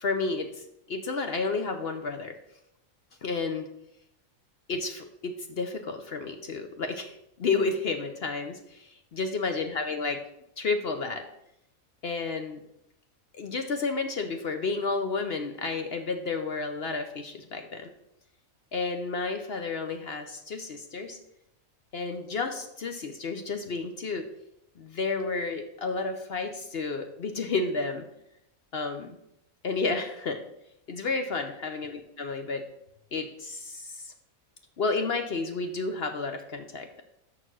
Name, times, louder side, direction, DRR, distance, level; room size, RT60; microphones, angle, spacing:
voice 1, 0.0-2.3 3.2-3.7 4.7-10.2 10.6-11.3 12.0-12.6 13.3-17.9 18.7-21.2 21.9-24.2 24.8-28.1 28.7-29.2 29.6-30.4 30.9-32.6 33.1-34.1 34.8-37.0, left 4 dB, 55° left, 6 dB, 0.8 m, -31 dB
6.7 x 6.1 x 6.1 m, 0.81 s
omnidirectional pair, 1.5 m